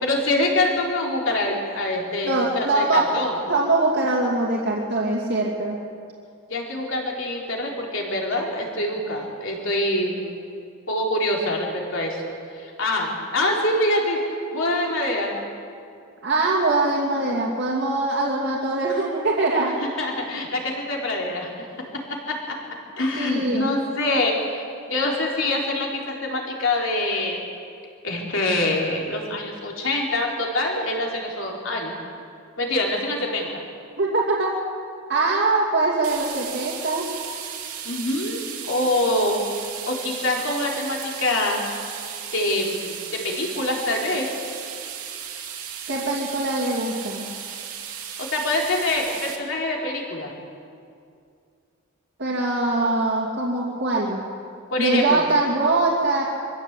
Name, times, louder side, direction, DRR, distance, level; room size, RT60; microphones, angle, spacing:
voice 1, 0.0-3.3 6.5-10.4 10.9-15.3 20.0-22.5 23.0-27.4 28.0-31.9 32.6-33.6 37.8-39.4 39.9-41.6 42.3-44.3 48.2-50.3 54.7-55.2, left 1 dB, 60° left, -1 dB, 3.8 m, -25 dB
voice 2, 2.2-3.1 3.5-5.8 16.2-19.7 23.2-23.7 34.0-34.5 35.1-37.1 45.9-47.3 52.2-54.2 54.8-56.2, right 2 dB, 55° right, -4 dB, 2.6 m, -22 dB
sound 1, 36.0-49.4, right 8 dB, 85° right, 2.7 m, -35 dB
24.0 x 14.5 x 8.2 m, 2.4 s
head